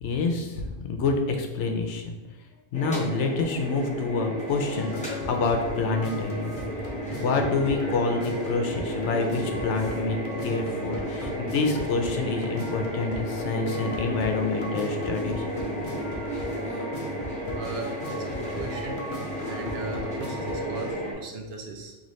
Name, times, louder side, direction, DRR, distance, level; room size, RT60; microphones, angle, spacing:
voice 1, 0.0-2.2 2.7-6.8 7.2-15.4, left 4 dB, 85° left, 4 dB, 0.9 m, -27 dB
sound 1, 2.7-21.1, equal, 5° left, 0.8 m, -33 dB
sound 2, 4.5-20.9, equal, 50° left, 0.8 m, -38 dB
voice 2, 17.5-19.0 19.4-22.0, right 3 dB, 65° right, 2 dB, 0.8 m, -37 dB
4.0 x 2.9 x 3.1 m, 1.1 s
omnidirectional pair, 1.2 m